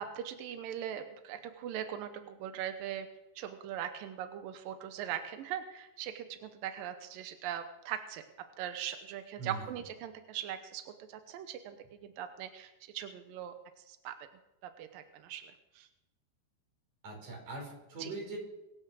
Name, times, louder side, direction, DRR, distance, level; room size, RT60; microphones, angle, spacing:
voice 1, 0.0-3.1 3.4-8.2 8.6-11.8 12.0-13.5 13.9-14.1 14.8-15.9 18.0-18.1, right 10 dB, 80° right, 8 dB, 2.1 m, -40 dB
voice 2, 17.0-18.4, right 3 dB, 40° right, 0 dB, 6.2 m, -41 dB
23.5 x 9.4 x 6.4 m, 0.97 s
omnidirectional pair, 5.3 m